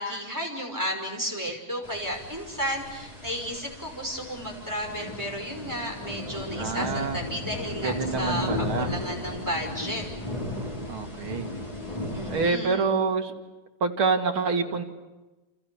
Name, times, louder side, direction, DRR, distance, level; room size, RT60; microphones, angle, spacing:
voice 1, 0.0-10.0 12.1-13.0, equal, 10° right, 1 dB, 5.2 m, -33 dB
sound 1, 1.8-12.5, left 1 dB, 15° left, 4.4 m, -35 dB
voice 2, 6.6-7.2 7.8-8.9 10.9-11.5 12.3-13.3 13.8-14.8, right 4 dB, 80° right, 4 dB, 2.9 m, -27 dB
28.5 x 28.5 x 7.0 m, 1.1 s
omnidirectional pair, 2.3 m